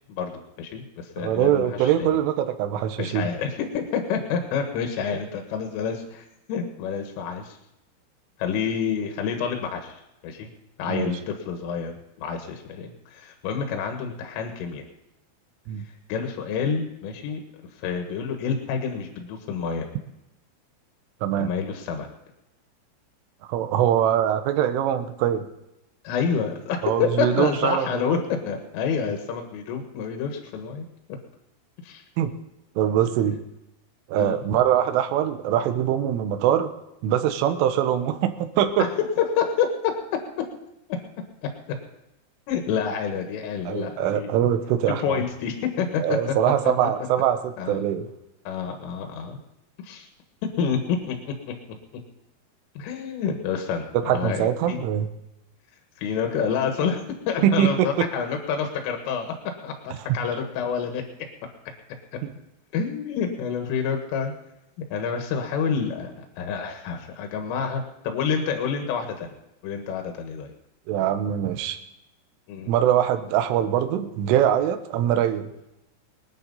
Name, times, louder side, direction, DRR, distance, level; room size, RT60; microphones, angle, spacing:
voice 1, 0.6-2.2 3.0-7.6 8.4-10.0 10.2-10.5 10.8-11.9 12.2-14.8 16.1-17.4 17.8-19.9 21.4-22.1 26.1-28.2 28.5-30.9 31.8-32.0 34.1-34.4 39.2-39.7 42.5-44.3 45.0-46.0 46.8-46.9 47.6-47.8 48.5-49.4 49.8-50.1 50.4-51.5 52.8-54.8 56.0-57.0 57.3-59.3 59.6-61.0 62.7-64.3 64.9-69.3 69.6-70.5 72.5-72.7, left 6 dB, 80° left, 4 dB, 4.1 m, -28 dB
voice 2, 1.2-3.3 10.9-11.1 15.7-15.9 21.2-21.5 23.5-25.5 26.8-28.2 32.2-32.3 32.8-33.4 34.1-36.7 37.0-38.9 43.7-45.2 46.0-48.1 54.1-55.1 57.4-58.1 62.2-62.3 70.9-71.8 72.7-75.5, right 10 dB, 80° right, 8 dB, 3.5 m, -23 dB
23.5 x 10.0 x 4.2 m, 0.87 s
omnidirectional pair, 5.7 m